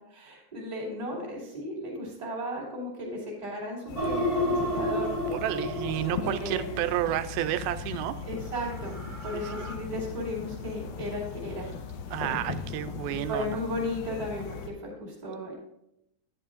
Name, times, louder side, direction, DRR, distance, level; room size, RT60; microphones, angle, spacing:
voice 1, 0.1-5.2 6.2-6.9 8.2-9.0 9.2-11.7 12.1-12.4 13.1-15.5, left 1 dB, 15° right, -5 dB, 2.1 m, -35 dB
sound 1, 3.9-14.7, left 6 dB, 85° left, 2.6 m, -38 dB
sound 2, 4.0-7.1 8.6-9.7, equal, 35° right, 1.9 m, -31 dB
voice 2, 5.2-8.2 9.3-9.6 12.1-13.6, right 13 dB, 90° right, 10 dB, 2.4 m, -31 dB
10.5 x 9.8 x 2.5 m, 0.84 s
omnidirectional pair, 4.2 m